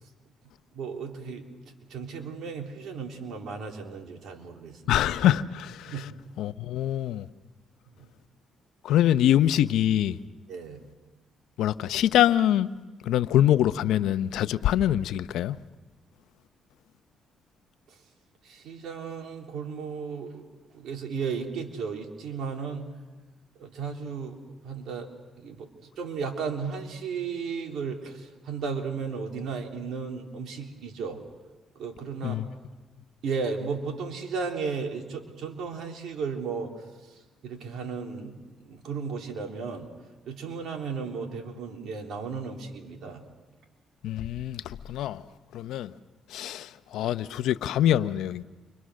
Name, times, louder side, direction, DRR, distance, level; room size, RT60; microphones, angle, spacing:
voice 1, 0.7-1.5 1.9-5.0 5.9-6.1 10.5-10.8 18.4-20.4 20.7-22.9 23.6-24.4 24.6-25.1 25.4-25.7 26.0-31.2 31.8-32.4 33.2-36.7 37.4-38.3 38.6-39.9 40.2-43.2, right 5 dB, 75° right, 3.5 m, -34 dB
voice 2, 4.9-6.1 6.4-7.3 8.8-10.2 11.6-12.7 13.1-15.6 32.2-32.5 44.0-45.2 45.5-45.9 46.3-48.4, left 11 dB, 85° left, 0.7 m, -24 dB
29.5 x 25.0 x 6.4 m
cardioid pair, 90°, 0 cm